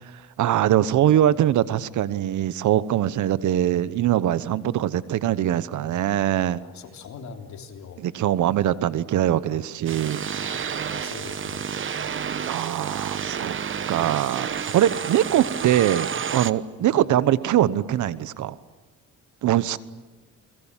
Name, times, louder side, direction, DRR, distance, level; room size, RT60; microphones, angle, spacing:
voice 1, 0.4-6.6 8.0-10.3 12.5-13.5 13.9-18.5 19.4-19.8, right 12 dB, 75° right, 16 dB, 1.1 m, -22 dB
voice 2, 6.6-8.0 9.5-9.6 10.9-11.7 16.9-17.1, left 6 dB, 70° left, 3 dB, 3.5 m, -41 dB
sound 1, 9.9-16.5, right 7 dB, 40° right, 1.1 m, -30 dB
29.0 x 22.0 x 7.4 m, 1.2 s
cardioid pair, 90°, 30 cm